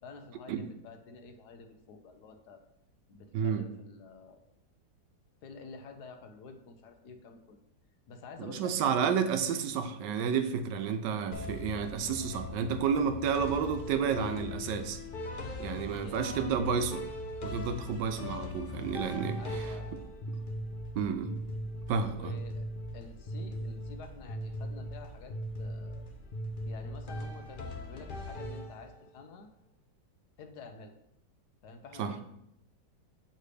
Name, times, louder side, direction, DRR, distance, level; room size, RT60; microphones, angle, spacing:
voice 1, 0.0-2.6 3.1-4.4 5.4-7.6 8.1-8.7 11.9-12.2 15.9-16.8 19.4-20.0 22.1-22.7 22.9-26.1 26.6-29.5 30.4-30.9 31.6-32.2, left 4 dB, 70° left, 6 dB, 1.2 m, -49 dB
voice 2, 3.3-3.6 8.4-15.0 15.6-17.1 17.4-19.4 20.9-21.3 21.9-22.3 32.0-32.1, right 6 dB, 75° right, 8 dB, 1.2 m, -31 dB
sound 1, 11.3-29.1, left 1 dB, 50° left, 0.6 m, -39 dB
6.7 x 6.5 x 3.3 m, 0.78 s
omnidirectional pair, 1.9 m